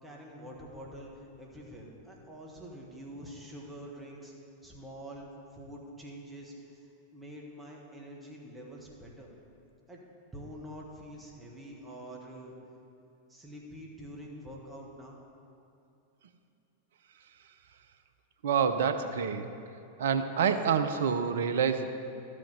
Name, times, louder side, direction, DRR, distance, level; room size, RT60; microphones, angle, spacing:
voice 1, 0.0-4.3 4.6-9.3 9.9-10.0 10.3-12.5 13.3-15.2, equal, 10° right, -2 dB, 1.7 m, -46 dB
voice 2, 18.4-19.5 20.0-21.9, right 7 dB, 60° right, 9 dB, 0.6 m, -27 dB
12.5 x 5.2 x 6.9 m, 2.6 s
figure-of-eight pair, 90°, 0 cm